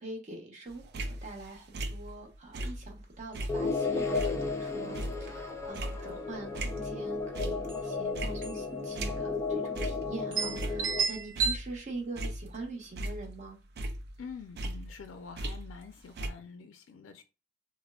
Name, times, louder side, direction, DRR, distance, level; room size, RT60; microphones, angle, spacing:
voice 1, 0.0-4.2 4.5-13.6, right 3 dB, 40° right, 0.8 m, -44 dB
sound 1, 0.7-3.0 3.3-7.0 7.3-7.8 8.1-9.5 9.7-10.1 10.4-11.8 12.2-13.5 13.8-15.9 16.2-16.3, right 1 dB, 55° right, 0.4 m, -38 dB
sound 2, 3.2-3.3 3.7-3.8 4.2-4.5 5.1-5.3 5.6-6.3 7.3-7.4 7.7-7.9 8.4-8.7 9.0-9.1 9.8-9.9 10.3-11.6, right 5 dB, 75° right, 0.8 m, -32 dB
sound 3, 3.5-11.0, left 4 dB, 15° left, 0.3 m, -34 dB
voice 2, 14.2-17.2, left 5 dB, 85° left, 0.4 m, -46 dB
3.5 x 2.1 x 2.3 m
head